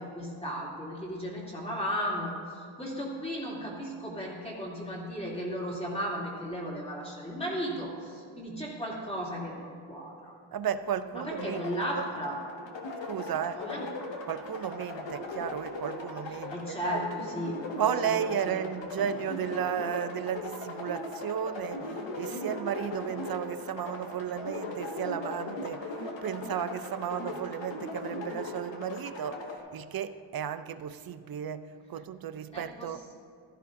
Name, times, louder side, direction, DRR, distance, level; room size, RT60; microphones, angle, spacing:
voice 1, 0.0-10.3 11.1-12.4 13.5-13.8 16.5-17.6 18.0-18.2 18.4-18.6 32.5-33.1, equal, 10° left, -5 dB, 2.5 m, -35 dB
voice 2, 10.5-12.0 13.1-13.6 14.3-17.0 17.8-29.4 29.7-33.0, right 9 dB, 50° right, 11 dB, 0.5 m, -34 dB
sound 1, 11.3-29.6, left 2 dB, 65° left, 1.7 m, -39 dB
15.5 x 13.0 x 2.6 m, 2.2 s
wide cardioid pair, 140°, 49 cm